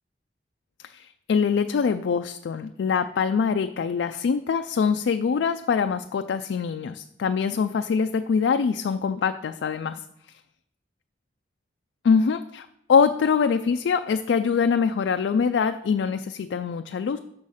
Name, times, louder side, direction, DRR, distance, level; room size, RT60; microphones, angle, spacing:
voice 1, 0.8-10.0 12.0-17.2, left 6 dB, 85° left, 8 dB, 0.3 m, -24 dB
6.4 x 6.2 x 5.6 m, 0.78 s
head